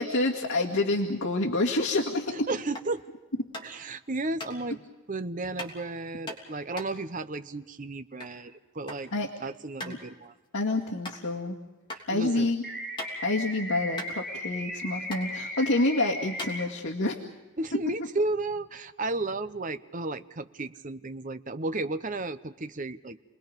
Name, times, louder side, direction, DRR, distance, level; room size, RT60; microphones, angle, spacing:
voice 1, 0.0-2.5 9.1-9.3 9.8-10.0 10.5-11.6 12.1-12.7 13.2-17.2 17.7-17.8, left 2 dB, 75° left, -2 dB, 2.0 m, -27 dB
voice 2, 2.5-3.0 3.6-4.8 5.1-9.1 9.4-10.3 12.1-12.5 17.6-23.2, right 2 dB, 40° right, 10 dB, 0.8 m, -33 dB
sound 1, 2.7-3.0 3.5-3.8 4.4-4.5 5.6-5.8 6.3-8.4 8.6-9.1 9.3-9.4 9.8-10.0 10.4-10.5 11.0-11.2 11.9-12.0 12.4-13.4 13.7-13.8 13.9-14.8 15.1-15.2 15.9-16.0 16.3-17.1, left 1 dB, 20° left, 3.2 m, -39 dB
sound 2, 12.6-16.6, equal, 5° left, 2.2 m, -37 dB
30.0 x 21.0 x 5.3 m, 1.2 s
head